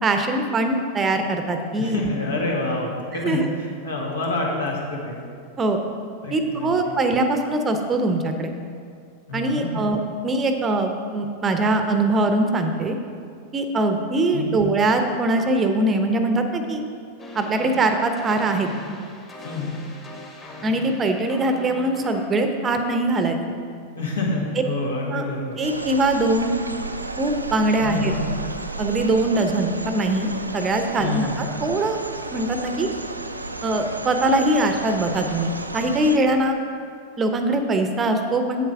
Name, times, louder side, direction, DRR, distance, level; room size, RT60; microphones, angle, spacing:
voice 1, 0.0-2.0 3.2-3.4 5.6-5.8 6.3-8.5 9.3-10.0 10.2-13.0 13.5-16.8 17.3-18.7 20.6-23.4 25.1-25.2 25.6-26.5 27.2-28.1 28.8-32.0 32.3-32.9 33.6-36.6 37.2-38.7, right 2 dB, 20° right, 6 dB, 0.7 m, -22 dB
voice 2, 1.8-5.2 6.2-6.9 9.3-9.8 14.3-14.5 19.4-19.8 23.9-25.6 27.8-28.2 31.0-31.4, left 2 dB, 70° left, -2 dB, 1.8 m, -27 dB
sound 1, 17.2-22.3, left 2 dB, 25° left, 1.6 m, -40 dB
sound 2, 25.6-36.2, right 2 dB, 85° right, 0.4 m, -33 dB
8.2 x 8.0 x 4.6 m, 2.3 s
figure-of-eight pair, 90°, 0 cm